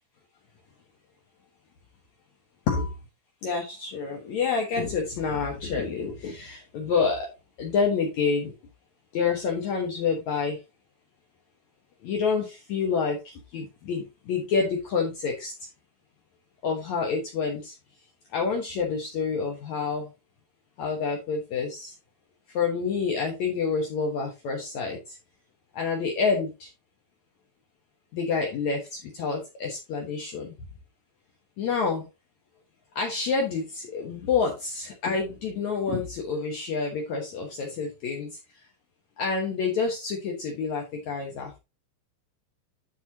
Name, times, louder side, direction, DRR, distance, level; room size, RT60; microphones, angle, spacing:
voice 1, 3.4-7.3 7.6-8.5 9.1-10.6 12.0-15.5 16.6-17.7 18.3-20.1 20.8-21.9 22.5-25.2 25.7-26.7 28.1-30.5 31.6-32.0 32.9-38.3 39.2-41.6, left 5 dB, 80° left, 0 dB, 1.6 m, -28 dB
13.0 x 4.8 x 2.8 m, 0.25 s
omnidirectional pair, 5.4 m